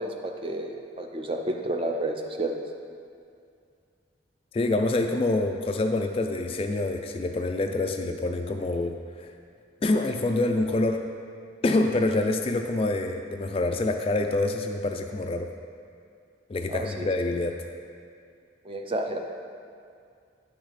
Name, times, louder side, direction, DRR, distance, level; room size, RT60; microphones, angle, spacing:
voice 1, 0.0-2.6 16.7-17.1 18.6-19.2, right 1 dB, 30° right, 3 dB, 0.6 m, -31 dB
voice 2, 4.5-9.3 9.8-11.0 11.6-15.5 16.5-17.5, left 2 dB, 30° left, 5 dB, 0.3 m, -26 dB
9.7 x 6.0 x 4.1 m, 2.3 s
head